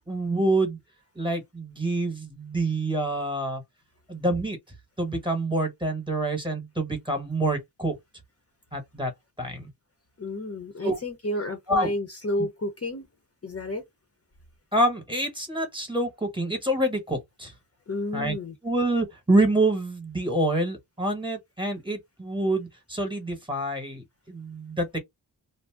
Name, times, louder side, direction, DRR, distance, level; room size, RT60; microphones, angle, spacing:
voice 1, 0.1-0.8 1.2-3.6 4.1-4.6 5.0-7.9 8.7-9.1 9.4-9.7 10.8-11.0 11.7-11.9 14.7-17.5 18.1-18.3 18.6-25.0, right 1 dB, 10° right, 1.1 m, -27 dB
voice 2, 10.2-13.1 13.4-13.8 17.9-18.5, left 1 dB, 35° left, 0.8 m, -31 dB
2.6 x 2.1 x 3.3 m
wide cardioid pair, 115°, 42 cm